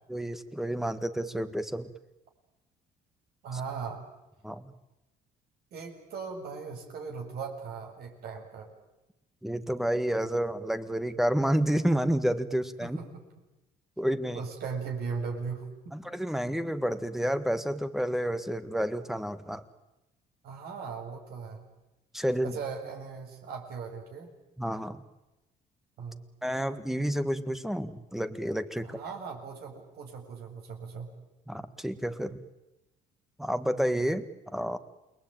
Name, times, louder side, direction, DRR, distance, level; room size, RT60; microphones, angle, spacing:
voice 1, 0.1-1.9 3.5-3.6 4.4-4.7 9.4-13.0 14.0-14.4 15.9-19.6 22.1-22.6 24.6-25.0 26.4-29.0 31.5-32.4 33.4-34.8, equal, ahead, 11 dB, 1.8 m, -30 dB
voice 2, 3.4-4.0 5.7-8.7 12.8-13.0 14.3-15.9 20.4-21.6 22.4-24.3 26.0-26.3 28.8-31.1, right 5 dB, 70° right, 0 dB, 7.3 m, -38 dB
29.0 x 21.5 x 9.2 m, 0.98 s
cardioid pair, 110°, 17 cm